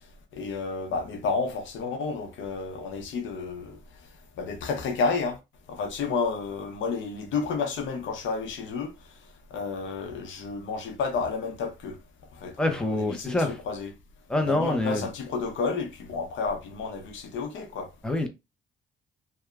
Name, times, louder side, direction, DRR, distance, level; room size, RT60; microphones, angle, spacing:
voice 1, 0.3-3.8 4.4-5.4 5.7-8.9 9.5-12.0 12.4-13.9 14.4-17.9, left 4 dB, 75° left, 0.7 m, -31 dB
voice 2, 12.6-13.5 14.3-15.0 18.0-18.3, left 1 dB, 5° left, 0.6 m, -26 dB
2.9 x 2.2 x 2.3 m
cardioid pair, 90°, 20 cm